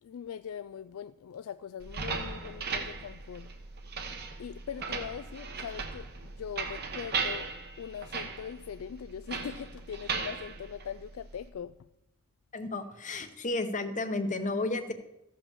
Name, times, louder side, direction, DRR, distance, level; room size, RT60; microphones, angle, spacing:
voice 1, 0.0-3.5 4.4-7.5 7.8-11.9, left 8 dB, 65° left, 0.3 m, -41 dB
sound 1, 1.8-11.5, right 5 dB, 45° right, 1.2 m, -37 dB
voice 2, 12.5-14.9, left 2 dB, 35° left, 0.9 m, -32 dB
14.5 x 5.4 x 7.1 m
head